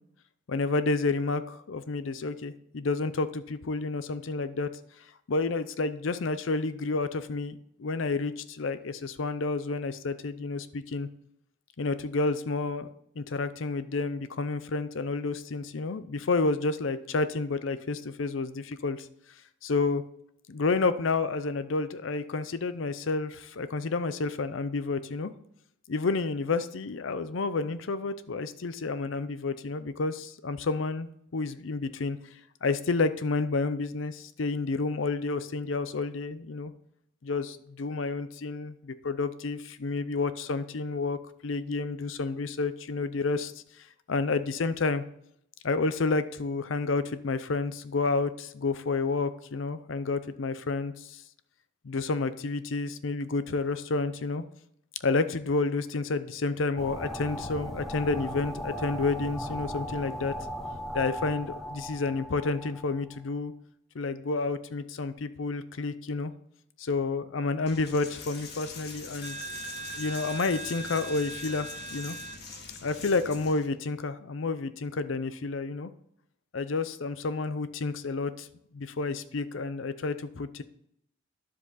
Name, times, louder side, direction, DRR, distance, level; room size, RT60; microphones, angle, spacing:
voice 1, 0.5-4.7 5.3-11.1 11.8-12.9 13.2-19.1 19.6-20.0 20.5-25.3 25.9-32.2 32.6-36.7 37.2-43.5 44.1-45.0 45.6-51.2 51.8-54.4 55.0-60.3 60.9-63.5 63.9-66.3 66.8-69.4 70.0-72.2 72.8-75.9 76.5-78.5 78.7-80.6, left 3 dB, 70° left, 13 dB, 0.6 m, -30 dB
sound 1, 56.8-63.2, equal, ahead, 0.7 m, -37 dB
Coin (dropping), 67.7-73.7, equal, 55° left, 1.5 m, -40 dB
10.5 x 7.5 x 4.0 m, 0.72 s
head